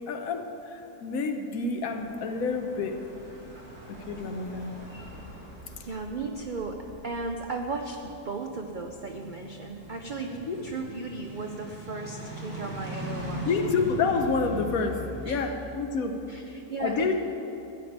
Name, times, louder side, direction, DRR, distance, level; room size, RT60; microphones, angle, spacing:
voice 1, 0.1-3.0 3.9-4.7 10.3-10.6 13.4-16.2 16.8-17.1, left 4 dB, 65° left, 5 dB, 1.2 m, -29 dB
sound 1, 1.9-15.3, right 1 dB, 65° right, 2.7 m, -41 dB
voice 2, 5.8-10.4 10.6-13.5 15.2-15.5 16.3-17.1, right 3 dB, 85° right, 3 dB, 0.4 m, -36 dB
13.0 x 5.1 x 8.5 m, 2.9 s
omnidirectional pair, 1.7 m